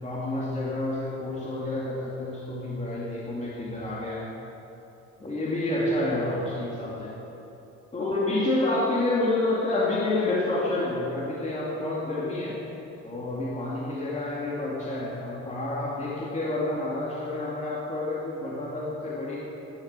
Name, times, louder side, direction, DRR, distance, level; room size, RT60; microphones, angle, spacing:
voice 1, 0.0-4.3 5.2-7.1 7.9-12.6 13.0-19.4, left 2 dB, 25° left, -5 dB, 2.6 m, -29 dB
15.5 x 12.0 x 6.8 m, 2.9 s
cardioid pair, 135°, 30 cm